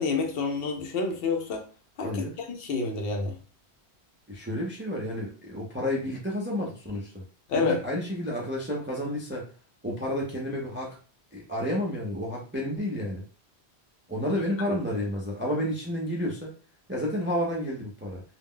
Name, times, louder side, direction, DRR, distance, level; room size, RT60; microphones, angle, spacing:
voice 1, 0.0-1.6 2.0-2.1 2.5-3.3 7.5-7.8, left 4 dB, 70° left, 3 dB, 0.8 m, -28 dB
voice 2, 2.0-2.4 4.3-7.2 7.5-9.5 9.8-11.0 11.3-13.2 14.1-16.5 16.9-18.2, equal, 20° right, -3 dB, 0.3 m, -30 dB
2.1 x 2.0 x 3.6 m, 0.38 s
omnidirectional pair, 1.1 m